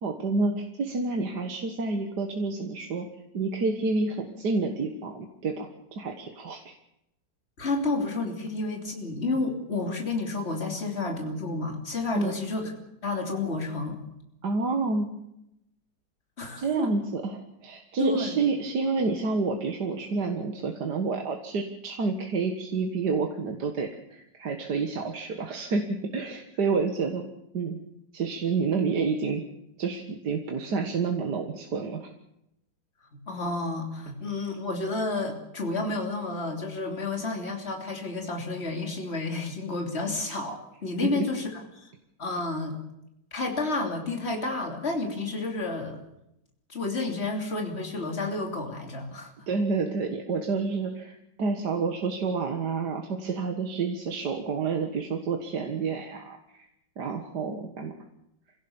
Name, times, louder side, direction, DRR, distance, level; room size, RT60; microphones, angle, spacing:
voice 1, 0.0-3.1 3.3-6.7 12.1-12.3 14.4-15.1 16.6-27.2 27.5-27.8 28.1-29.4 29.8-32.1 41.0-41.2 49.5-56.4 57.0-57.9, right 4 dB, 70° right, 4 dB, 2.1 m, -29 dB
voice 2, 7.6-12.7 13.0-14.0 16.4-16.9 18.0-18.4 33.1-41.9 42.2-42.8 43.3-46.0 46.7-49.3, left 3 dB, 35° left, 2 dB, 3.4 m, -30 dB
25.5 x 17.0 x 7.2 m, 0.83 s
omnidirectional pair, 1.9 m